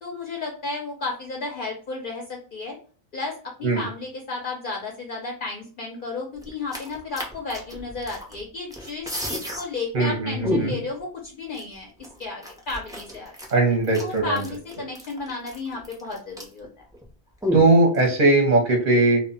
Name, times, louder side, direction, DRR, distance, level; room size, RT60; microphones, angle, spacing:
voice 1, 0.0-2.8 3.1-11.9 12.2-13.3 14.0-16.7, left 3 dB, 60° left, 0 dB, 0.6 m, -33 dB
sound 1, 6.4-8.4 8.7-9.6 9.9-10.0 10.4-11.0 11.5-11.6 12.0-16.7 16.9-17.0 17.4-18.1, left 1 dB, 5° right, 0.3 m, -31 dB
voice 2, 9.9-10.8 13.5-14.4 17.5-19.2, right 2 dB, 45° right, 0 dB, 0.6 m, -19 dB
2.1 x 2.1 x 3.7 m, 0.41 s
omnidirectional pair, 1.1 m